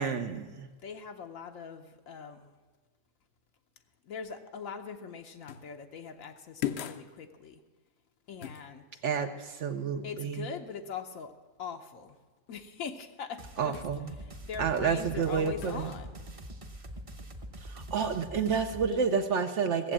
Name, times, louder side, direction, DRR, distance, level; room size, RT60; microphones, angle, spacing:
voice 1, 0.0-0.7 9.0-10.5 13.6-14.1 14.6-15.9 17.6-19.9, right 6 dB, 65° right, 7 dB, 1.0 m, -30 dB
voice 2, 0.8-2.6 4.0-7.6 8.3-9.0 10.0-11.3 11.6-12.2 12.5-13.8 14.2-16.2, left 6 dB, 80° left, 4 dB, 1.2 m, -42 dB
sound 1, 5.5-5.7 6.6-7.1 8.4-8.7 13.7-14.0 15.6-15.9, left 10 dB, 60° left, 0.8 m, -37 dB
sound 2, 13.4-18.9, right 1 dB, 30° right, 0.8 m, -44 dB
15.5 x 7.8 x 7.3 m, 1.3 s
omnidirectional pair, 1.4 m